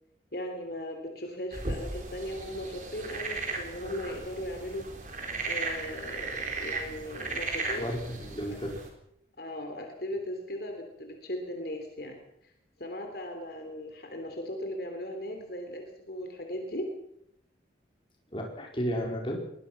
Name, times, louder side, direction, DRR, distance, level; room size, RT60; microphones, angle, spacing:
voice 1, 0.3-5.2 5.5-8.0 9.4-12.5 12.8-16.8, left 1 dB, 55° left, 4 dB, 3.3 m, -38 dB
sound 1, 1.5-8.9, right 3 dB, 45° right, 4.2 m, -36 dB
voice 2, 7.7-8.7 18.3-19.5, equal, 25° left, 0 dB, 4.7 m, -33 dB
22.5 x 19.5 x 6.0 m, 0.75 s
head